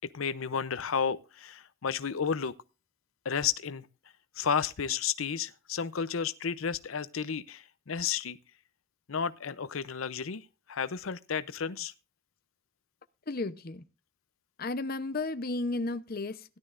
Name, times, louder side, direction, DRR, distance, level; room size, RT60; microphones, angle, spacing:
voice 1, 0.1-2.5 3.2-3.9 4.4-8.4 9.1-11.9, left 6 dB, 85° left, 0.7 m, -32 dB
voice 2, 13.3-13.8 14.6-16.6, left 2 dB, 50° left, 0.8 m, -33 dB
17.0 x 12.0 x 2.5 m
head